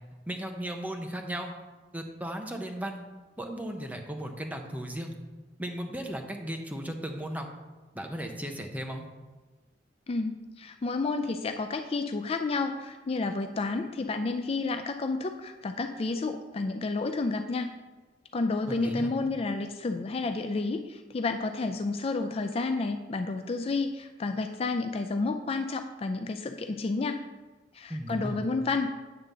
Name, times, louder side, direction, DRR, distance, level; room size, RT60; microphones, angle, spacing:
voice 1, 0.3-1.5 1.9-3.0 3.4-5.1 5.6-7.5 7.9-9.1 18.7-19.1 27.9-28.4, right 1 dB, 10° right, 3 dB, 0.8 m, -36 dB
voice 2, 10.1-17.7 18.3-27.2 27.7-28.9, left 3 dB, 35° left, 7 dB, 0.4 m, -30 dB
9.0 x 3.9 x 6.7 m, 1.2 s
head